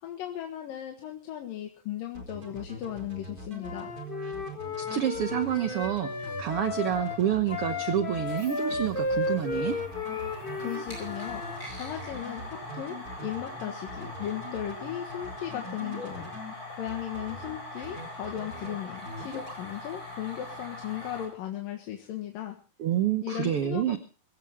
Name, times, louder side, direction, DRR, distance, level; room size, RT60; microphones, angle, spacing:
voice 1, 0.0-3.9 10.6-11.4 11.7-16.3 16.7-22.6 23.2-24.0, left 11 dB, 90° left, 3 dB, 3.3 m, -36 dB
sound 1, 2.1-16.5 16.9-17.5 17.8-18.7 19.0-19.6, right 1 dB, 25° right, 4.6 m, -42 dB
Wind instrument woodwind instrument, 3.6-11.6, left 3 dB, 70° left, 0.5 m, -34 dB
voice 2, 4.8-9.8 22.8-24.0, right 10 dB, 60° right, 8 dB, 1.5 m, -28 dB
sound 2, 8.1-21.3, left 1 dB, 25° left, 7.9 m, -42 dB
22.0 x 15.5 x 3.6 m, 0.36 s
omnidirectional pair, 3.8 m